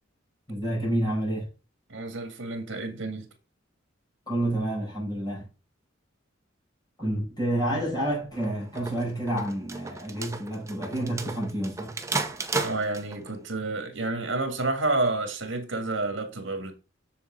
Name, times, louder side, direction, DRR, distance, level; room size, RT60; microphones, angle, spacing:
voice 1, 0.5-1.5 4.3-5.5 7.0-11.9, right 1 dB, 20° left, 5.5 m, -29 dB
voice 2, 1.9-3.3 12.6-16.7, right 2 dB, 65° right, 1.9 m, -29 dB
sound 1, 8.4-13.3, right 3 dB, 15° right, 0.8 m, -33 dB
7.1 x 7.0 x 3.7 m
head